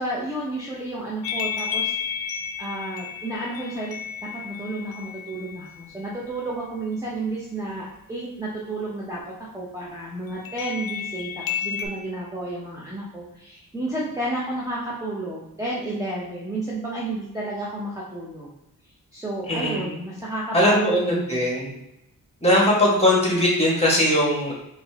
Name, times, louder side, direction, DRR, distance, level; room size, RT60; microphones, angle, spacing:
voice 1, 0.0-2.2 2.6-3.9 4.3-18.5 19.1-21.5, right 1 dB, 10° right, -6 dB, 0.7 m, -31 dB
sound 1, 1.2-5.8 10.4-11.9, left 8 dB, 70° left, 0.5 m, -31 dB
voice 2, 19.5-19.8 20.5-21.7 22.4-24.5, left 1 dB, 15° left, -4 dB, 1.4 m, -20 dB
4.1 x 2.7 x 3.4 m, 0.87 s
wide cardioid pair, 110°, 37 cm